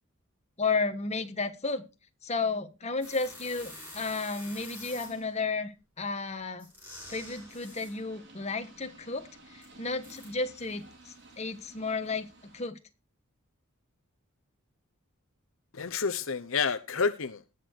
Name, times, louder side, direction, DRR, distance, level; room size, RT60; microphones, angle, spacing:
voice 1, 0.6-1.8 2.2-6.6 7.1-12.8, left 4 dB, 30° left, 1.4 m, -33 dB
sound 1, 3.0-5.4 6.6-8.0 9.6-9.7 10.0-10.3, left 1 dB, 10° right, 6.9 m, -47 dB
sound 2, 7.0-12.6, right 2 dB, 55° right, 4.2 m, -54 dB
voice 2, 15.7-17.5, left 5 dB, 65° left, 0.8 m, -29 dB
18.5 x 6.8 x 4.5 m
head